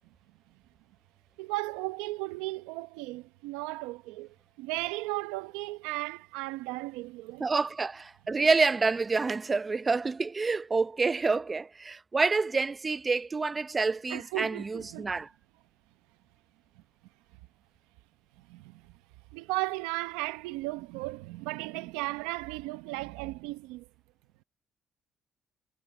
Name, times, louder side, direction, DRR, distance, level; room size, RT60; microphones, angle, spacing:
voice 1, 1.4-7.5 14.1-15.1 18.4-18.9 19.3-23.9, right 20 dB, 90° right, 0.8 m, -36 dB
voice 2, 7.4-15.3, right 4 dB, 30° right, 0.7 m, -28 dB
supercardioid pair, 60°, 0 cm